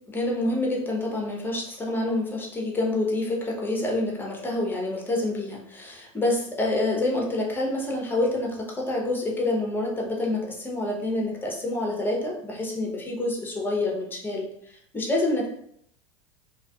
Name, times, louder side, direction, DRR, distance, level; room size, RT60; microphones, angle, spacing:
voice 1, 0.1-15.5, left 2 dB, 10° left, -1 dB, 0.7 m, -27 dB
2.7 x 2.4 x 2.3 m, 0.69 s
hypercardioid pair, 95°, 16 cm